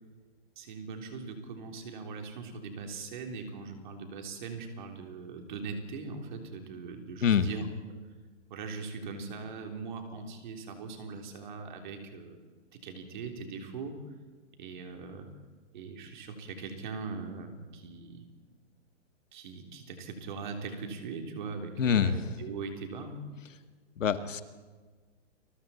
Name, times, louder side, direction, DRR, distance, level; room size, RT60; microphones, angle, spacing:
voice 1, 0.6-7.7 8.5-12.4 12.7-14.0 14.6-15.3 15.7-18.3 19.3-23.3, right 4 dB, 40° right, 4 dB, 3.6 m, -40 dB
voice 2, 21.8-22.2 24.0-24.4, left 8 dB, 90° left, 10 dB, 1.9 m, -25 dB
30.0 x 21.5 x 4.4 m, 1.4 s
hypercardioid pair, 175°, 37 cm